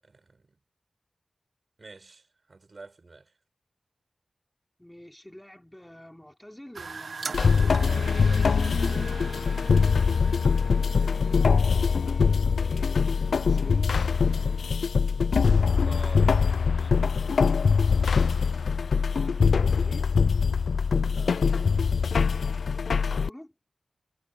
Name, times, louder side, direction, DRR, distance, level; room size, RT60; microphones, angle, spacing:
voice 1, 0.0-0.6 1.8-3.3 7.8-8.6 15.8-16.4 21.0-21.4, right 3 dB, 50° right, 7.0 m, -46 dB
voice 2, 4.8-7.5 10.9-13.9 16.7-16.9 19.1-20.1 22.9-23.5, left 1 dB, 10° left, 4.5 m, -48 dB
sound 1, 6.7-11.8, right 4 dB, 75° right, 0.9 m, -40 dB
sound 2, 7.3-23.3, left 5 dB, 90° left, 0.4 m, -23 dB
sound 3, 9.6-14.8, left 3 dB, 50° left, 5.0 m, -55 dB
wide cardioid pair, 95°, 0 cm